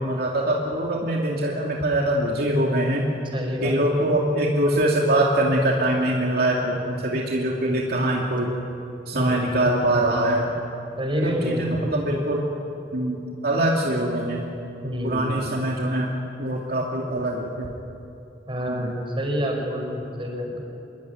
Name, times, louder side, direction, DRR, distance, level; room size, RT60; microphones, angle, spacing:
voice 1, 0.0-3.1 3.6-8.5 9.1-10.5 11.2-12.4 12.9-13.2 13.4-14.4 15.0-16.1 16.4-17.7 18.7-18.9, right 1 dB, 60° right, -1 dB, 2.7 m, -23 dB
voice 2, 3.3-3.8 9.1-9.7 11.0-11.9 14.8-15.4 18.5-20.6, equal, 30° right, 2 dB, 5.2 m, -28 dB
26.5 x 22.0 x 9.5 m, 2.8 s
head